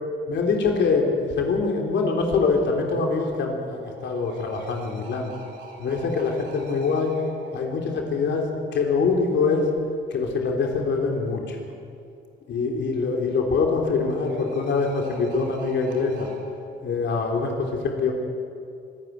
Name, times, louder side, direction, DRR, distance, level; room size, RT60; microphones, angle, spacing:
voice 1, 0.3-5.3 5.8-7.1 7.5-8.5 8.7-9.7 10.1-11.6 12.5-16.3 16.8-18.1, left 4 dB, 65° left, 1 dB, 3.7 m, -24 dB
sound 1, 3.4-9.0 12.5-16.4, right 2 dB, 65° right, 7.7 m, -46 dB
25.0 x 13.0 x 9.5 m, 2.4 s
cardioid pair, 90°, 20 cm